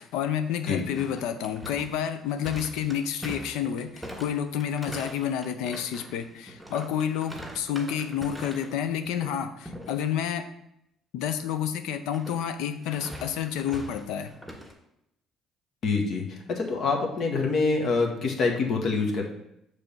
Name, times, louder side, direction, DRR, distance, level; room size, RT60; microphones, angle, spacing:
voice 1, 0.0-10.5 11.1-14.3, left 9 dB, 75° left, 9 dB, 0.5 m, -29 dB
sound 1, 0.9-8.8 9.0-9.3 9.6-10.0 12.1-14.7, right 1 dB, 5° right, 2.2 m, -42 dB
voice 2, 15.8-19.3, left 4 dB, 60° left, 1 dB, 1.3 m, -26 dB
6.7 x 3.4 x 5.4 m, 0.80 s
hypercardioid pair, 60°, 0 cm